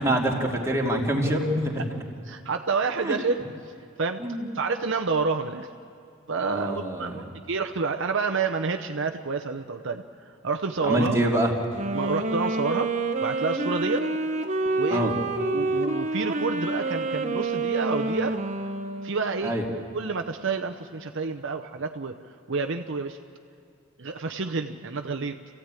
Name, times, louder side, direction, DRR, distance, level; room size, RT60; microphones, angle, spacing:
voice 1, 0.0-1.8 3.0-3.2 4.2-4.5 6.5-7.1 10.8-11.5 14.9-15.1 19.4-19.6, right 1 dB, 15° right, -2 dB, 2.7 m, -25 dB
voice 2, 2.3-3.4 4.0-5.7 6.3-10.0 10.4-11.3 11.9-12.9 13.2-14.1 14.8-18.4 19.0-22.1 22.5-23.2 24.0-25.4, right 4 dB, 60° right, 5 dB, 0.8 m, -29 dB
Wind instrument woodwind instrument, 11.6-19.3, right 2 dB, 35° right, 1.1 m, -28 dB
28.5 x 15.5 x 9.0 m, 2.3 s
head